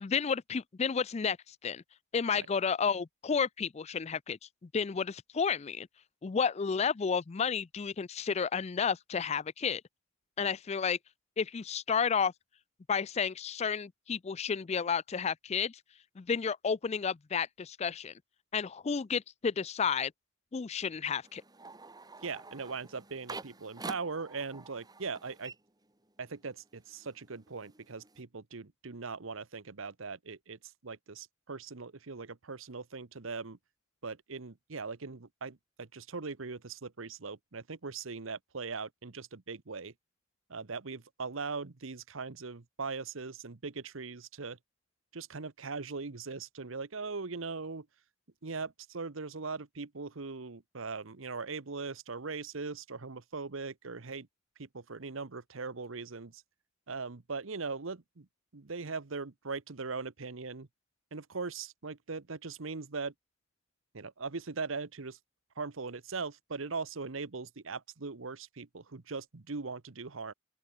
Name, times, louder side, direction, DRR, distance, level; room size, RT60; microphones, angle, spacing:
voice 1, 0.0-1.8 2.1-4.4 4.7-5.9 6.2-9.8 10.4-11.0 11.4-12.3 12.9-15.8 16.2-18.1 18.5-20.1 20.5-21.4, left 6 dB, 30° left, 0.4 m, -31 dB
sound 1, 21.2-26.4 26.7-28.2, right 3 dB, 20° right, 2.1 m, -48 dB
voice 2, 22.2-25.5 26.2-33.6 34.0-39.9 40.5-44.6 45.1-47.9 48.4-54.3 54.6-56.4 56.9-58.3 58.5-60.7 61.1-63.1 63.9-65.2 65.6-70.3, right 4 dB, 70° right, 1.0 m, -40 dB
open air
head